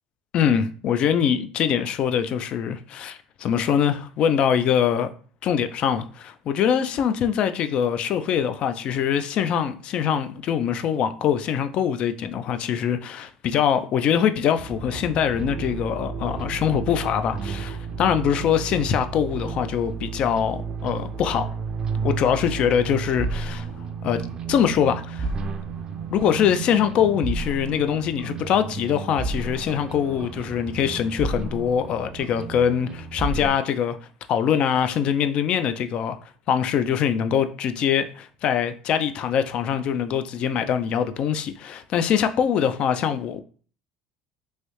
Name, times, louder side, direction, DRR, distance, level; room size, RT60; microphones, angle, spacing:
voice 1, 0.3-5.1 5.4-21.5 22.0-23.7 24.0-24.2 24.5-25.3 26.1-34.0 34.3-36.2 36.5-43.4, left 8 dB, 50° left, 0.3 m, -23 dB
sound 1, 14.6-33.5, right 4 dB, 35° right, 0.4 m, -32 dB
3.1 x 2.7 x 3.0 m
supercardioid pair, 115°, 2 cm